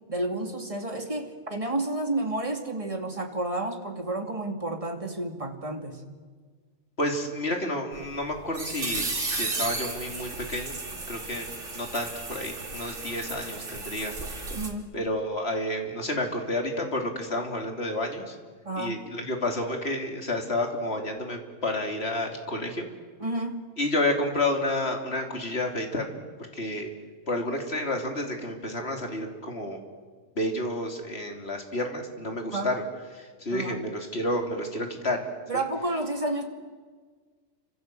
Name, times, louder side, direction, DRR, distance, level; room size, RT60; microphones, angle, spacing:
voice 1, 0.1-6.0 14.5-14.9 18.6-19.0 23.2-23.6 32.5-32.7 33.5-33.8 35.5-36.5, right 2 dB, 25° right, 4 dB, 2.6 m, -31 dB
voice 2, 7.0-10.8 11.1-14.1 14.9-18.3 18.8-22.8 23.8-26.1 26.5-26.9 27.3-29.8 30.4-32.8 33.1-35.3 35.5-35.6, left 1 dB, 45° left, 3 dB, 3.4 m, -30 dB
sound 1, 8.0-14.7, right 3 dB, 60° right, 3.1 m, -34 dB
29.5 x 26.0 x 7.8 m, 1.5 s
omnidirectional pair, 1.4 m